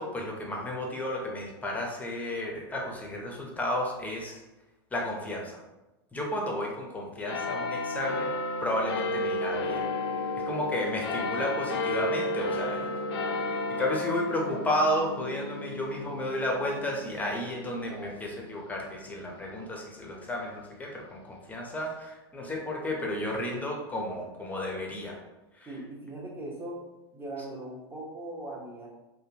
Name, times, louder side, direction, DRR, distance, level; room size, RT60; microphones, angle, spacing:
voice 1, 0.0-4.4 4.9-5.6 6.1-8.3 8.6-9.9 10.4-12.9 13.5-25.2 25.6-25.7, left 1 dB, 10° left, -1 dB, 0.7 m, -32 dB
sound 1, 7.3-20.2 20.8-20.9, left 2 dB, 75° left, 0.4 m, -33 dB
voice 2, 25.7-26.8 27.1-28.9, right 1 dB, 15° right, -3 dB, 1.0 m, -40 dB
3.3 x 2.2 x 2.8 m, 1.0 s
hypercardioid pair, 110°, 14 cm